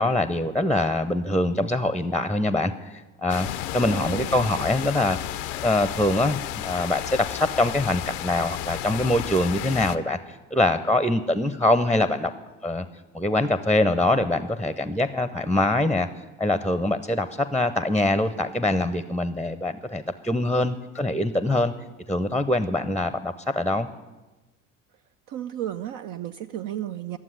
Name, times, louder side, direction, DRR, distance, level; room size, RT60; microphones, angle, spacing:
voice 1, 0.0-3.5 3.7-5.2 5.6-12.3 12.6-12.9 13.1-16.1 16.4-21.7 22.1-23.9, left 1 dB, 5° left, 13 dB, 0.7 m, -24 dB
sound 1, 3.3-10.0, left 13 dB, 75° left, 0.6 m, -32 dB
voice 2, 3.8-4.4 25.3-27.2, right 11 dB, 55° right, 6 dB, 0.7 m, -33 dB
12.0 x 7.3 x 9.9 m, 1.1 s
hypercardioid pair, 60°, 39 cm